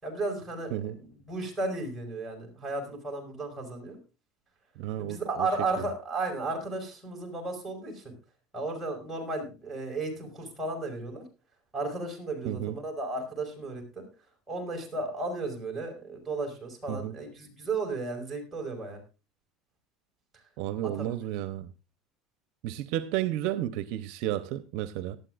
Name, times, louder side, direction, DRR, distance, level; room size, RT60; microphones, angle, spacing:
voice 1, 0.0-4.0 5.0-8.1 8.5-11.3 11.7-14.1 14.5-19.0 20.8-21.2, right 3 dB, 10° right, 5.3 m, -34 dB
voice 2, 4.8-5.5 5.8-5.9 12.4-12.8 16.9-17.2 20.6-21.7 22.6-25.2, right 13 dB, 65° right, 0.8 m, -32 dB
18.0 x 12.5 x 2.5 m
cardioid pair, 155°, 0 cm